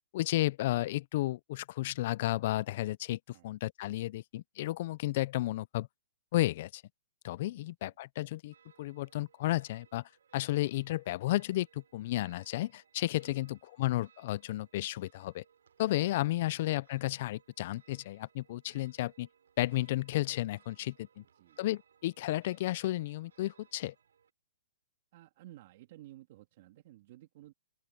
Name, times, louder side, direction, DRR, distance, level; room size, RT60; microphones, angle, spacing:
voice 1, 0.1-3.2 3.4-5.9 6.3-6.8 7.2-10.0 10.3-15.4 15.8-19.3 19.6-21.2 21.6-23.9, left 16 dB, 40° left, 0.3 m, -33 dB
voice 2, 7.5-8.0 13.3-13.6 16.5-16.6 21.2-21.6 25.1-27.5, right 15 dB, 40° right, 2.9 m, -55 dB
sound 1, 8.5-24.3, right 7 dB, 75° right, 5.5 m, -66 dB
open air
hypercardioid pair, 165°, 0 cm